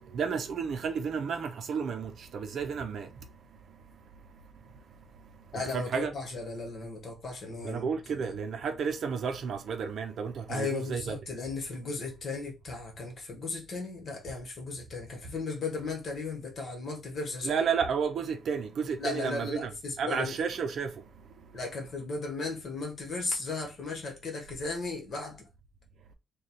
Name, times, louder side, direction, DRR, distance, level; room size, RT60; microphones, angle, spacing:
voice 1, 0.1-3.1 5.7-6.1 7.6-11.2 17.4-19.7 20.0-20.9, right 6 dB, 50° right, 0.6 m, -31 dB
voice 2, 5.5-7.8 8.2-8.3 10.5-17.6 19.0-20.3 21.5-25.5, left 3 dB, 40° left, 1.2 m, -36 dB
3.2 x 2.3 x 4.1 m
cardioid pair, 160°, 0 cm